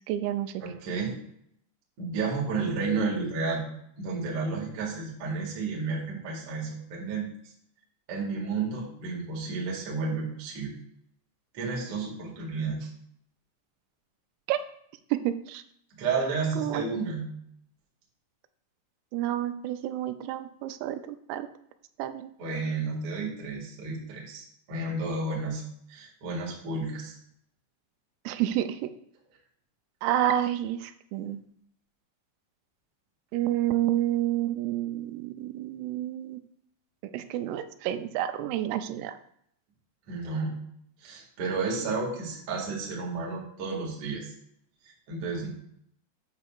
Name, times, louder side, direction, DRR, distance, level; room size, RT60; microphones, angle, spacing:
voice 1, 0.1-0.6 14.5-14.6 15.1-15.6 16.6-16.8 19.1-21.5 22.0-22.3 28.3-28.9 30.0-31.4 33.3-36.4 37.1-39.2, right 12 dB, 90° right, 10 dB, 3.3 m, -29 dB
voice 2, 0.6-1.1 2.0-3.6 4.0-7.3 8.1-10.7 11.5-12.9 15.9-17.3 22.4-25.6 25.9-27.1 40.1-40.5 41.0-44.3 44.8-45.5, right 4 dB, 55° right, -3 dB, 1.6 m, -31 dB
9.3 x 6.9 x 2.4 m, 0.70 s
omnidirectional pair, 5.9 m